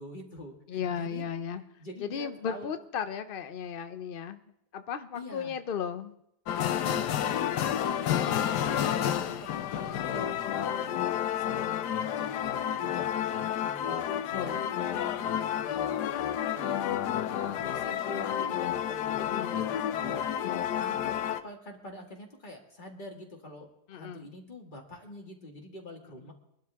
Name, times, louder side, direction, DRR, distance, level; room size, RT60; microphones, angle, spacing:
voice 1, 0.0-1.3 1.8-2.7 5.1-5.6 6.7-11.0 11.4-12.5 12.7-14.0 14.3-16.2 16.5-20.2 20.8-26.3, left 1 dB, 30° left, 1 dB, 2.1 m, -45 dB
voice 2, 0.7-1.6 2.0-4.4 4.7-6.1 14.3-14.6 19.2-19.6 20.4-20.8 23.9-24.3, left 7 dB, 65° left, 10 dB, 0.5 m, -35 dB
sound 1, 6.5-21.4, left 10 dB, 90° left, 1.3 m, -30 dB
24.0 x 12.0 x 3.5 m, 0.77 s
omnidirectional pair, 1.7 m